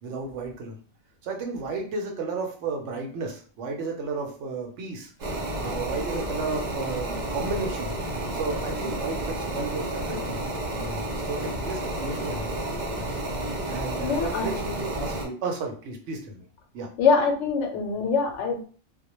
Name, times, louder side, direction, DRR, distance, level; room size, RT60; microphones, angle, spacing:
voice 1, 0.0-0.8 1.2-5.1 5.5-7.9 8.3-12.6 13.7-16.4 16.7-16.9, right 3 dB, 75° right, 2 dB, 0.9 m, -33 dB
sound 1, 5.2-15.2, right 1 dB, 50° right, 0.5 m, -31 dB
voice 2, 14.0-14.5 17.0-18.7, left 5 dB, 80° left, 2 dB, 0.9 m, -23 dB
2.2 x 2.1 x 2.9 m, 0.42 s
omnidirectional pair, 1.2 m